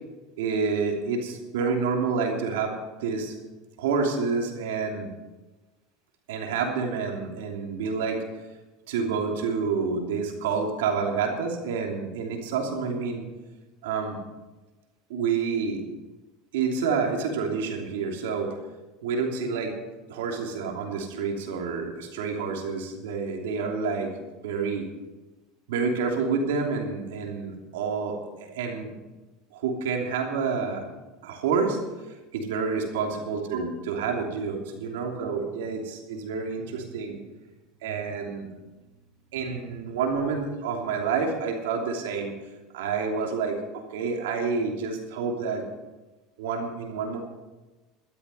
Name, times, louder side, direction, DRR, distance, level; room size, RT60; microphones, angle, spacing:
voice 1, 0.4-3.4 3.8-5.1 6.3-8.2 8.9-13.2 13.8-14.2 15.1-15.8 16.5-18.6 19.0-19.8 20.1-24.1 24.4-24.9 25.7-28.9 29.5-30.8 31.2-31.8 32.3-37.2 37.8-38.5 39.3-42.3 42.7-45.6 46.4-47.2, right 5 dB, 90° right, 2 dB, 3.0 m, -28 dB
13.5 x 12.5 x 5.6 m, 1.2 s
supercardioid pair, 110°, 0 cm